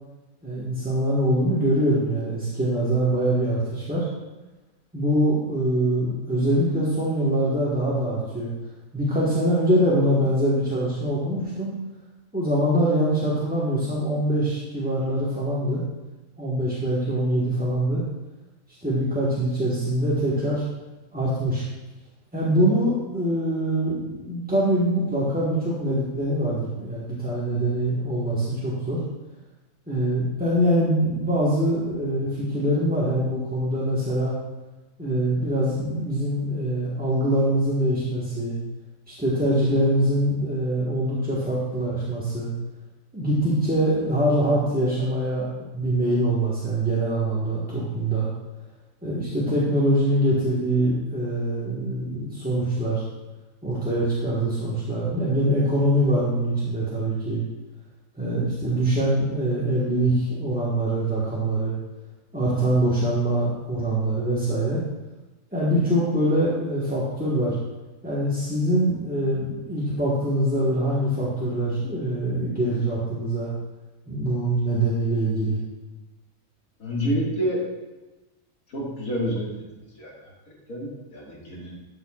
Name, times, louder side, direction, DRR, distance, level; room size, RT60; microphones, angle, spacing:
voice 1, 0.4-4.1 4.9-8.5 8.9-11.7 12.3-15.8 16.4-18.0 18.8-20.6 21.1-21.6 22.3-29.0 29.9-34.3 35.0-38.6 39.1-42.5 43.1-45.5 45.7-48.3 49.0-53.0 53.6-57.4 58.2-61.8 62.3-64.8 65.5-67.6 68.0-73.5 74.1-75.6, right 1 dB, 5° right, -9 dB, 1.2 m, -24 dB
voice 2, 76.8-77.6 78.7-79.5 80.0-80.3 80.7-81.8, equal, 85° left, -4 dB, 2.5 m, -28 dB
12.0 x 6.8 x 2.4 m, 1.1 s
omnidirectional pair, 1.5 m